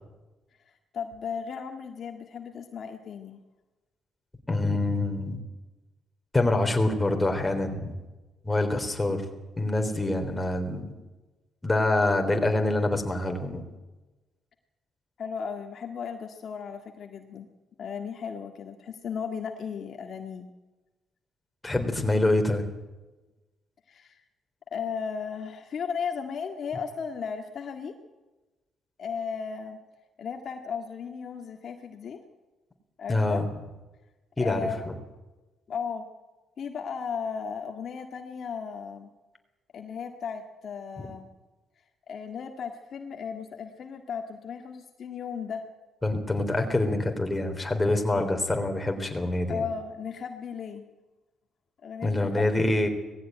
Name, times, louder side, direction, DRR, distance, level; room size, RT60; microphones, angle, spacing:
voice 1, 0.9-3.4 15.2-17.5 17.8-20.5 23.9-24.2 24.7-27.9 29.0-29.8 30.2-32.2 33.0-33.4 34.4-34.9 35.7-36.1 36.6-39.1 39.7-41.3 42.1-45.6 49.5-50.8 51.8-52.6, left 6 dB, 60° left, 4 dB, 1.8 m, -35 dB
voice 2, 4.5-5.4 6.3-8.0 8.4-9.2 9.6-10.9 11.6-13.6 21.6-22.7 33.1-33.4 34.4-34.9 46.0-49.6 52.0-52.9, left 2 dB, 15° left, 4 dB, 3.6 m, -25 dB
18.5 x 15.5 x 9.2 m, 1.1 s
cardioid pair, 90°, 0 cm